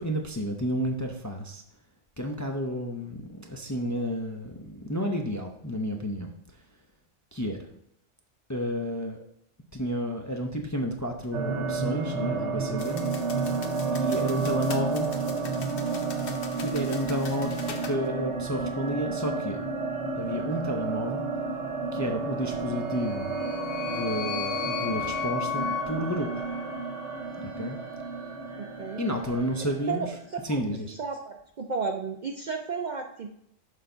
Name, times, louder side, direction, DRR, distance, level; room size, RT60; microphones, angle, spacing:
voice 1, 0.0-1.6 2.2-6.3 7.3-7.7 8.5-9.2 9.7-13.1 13.9-15.1 16.6-17.5 17.8-19.6 20.2-21.3 21.9-23.3 23.9-26.3 27.6-27.8 29.0-30.1 30.4-30.9, equal, 20° left, 3 dB, 0.5 m, -31 dB
sound 1, 11.3-30.3, right 4 dB, 70° right, 1.2 m, -31 dB
sound 2, 12.8-18.0, left 5 dB, 55° left, 1.0 m, -43 dB
sound 3, 22.9-27.2, left 9 dB, 90° left, 1.0 m, -34 dB
voice 2, 28.6-29.0 29.9-30.1 30.3-30.6 30.9-33.4, right 5 dB, 50° right, 3 dB, 0.5 m, -33 dB
6.6 x 5.4 x 3.9 m, 0.73 s
omnidirectional pair, 1.2 m